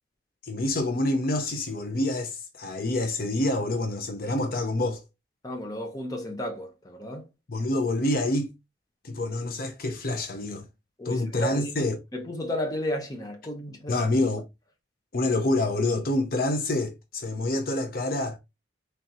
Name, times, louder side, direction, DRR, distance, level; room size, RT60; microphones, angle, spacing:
voice 1, 0.4-5.0 7.5-8.5 9.0-10.6 11.0-12.0 13.9-14.4 15.1-18.4, left 2 dB, 50° left, 0.7 m, -27 dB
voice 2, 5.4-7.3 11.0-11.9 12.1-13.9, equal, 20° left, 0.8 m, -33 dB
4.0 x 3.3 x 2.9 m
head